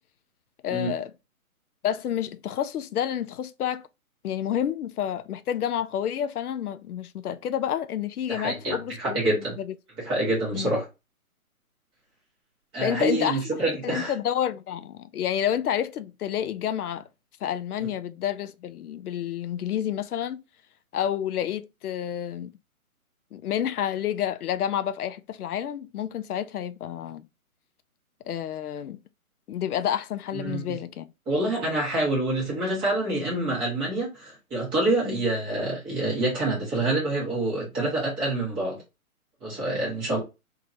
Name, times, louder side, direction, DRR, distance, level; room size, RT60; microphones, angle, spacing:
voice 1, 0.6-1.1 1.8-3.9 4.2-9.4 9.7-9.8 10.5-10.8 12.8-13.4 13.8-17.1 17.4-20.4 20.9-22.5 23.3-27.2 28.3-29.0 29.5-31.1 35.0-35.2, left 10 dB, 90° left, 0.5 m, -29 dB
voice 2, 8.3-9.6 10.0-10.8 12.7-14.1 17.8-17.9 30.3-30.8 31.3-38.8 39.4-40.2, right 2 dB, 10° right, 1.3 m, -27 dB
3.7 x 2.7 x 2.6 m
hypercardioid pair, 155°, 44 cm